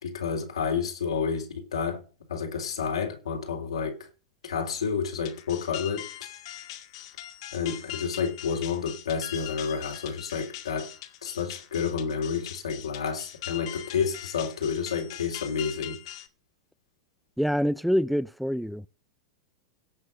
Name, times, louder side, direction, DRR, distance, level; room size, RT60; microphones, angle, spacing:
voice 1, 0.0-4.1 4.4-6.1 7.5-10.9 11.2-16.0, left 6 dB, 85° left, 3.5 m, -30 dB
sound 1, 5.3-16.3, left 13 dB, 65° left, 1.9 m, -41 dB
voice 2, 17.4-18.8, equal, ahead, 0.5 m, -26 dB
17.0 x 6.4 x 6.5 m
hypercardioid pair, 100°, 3 cm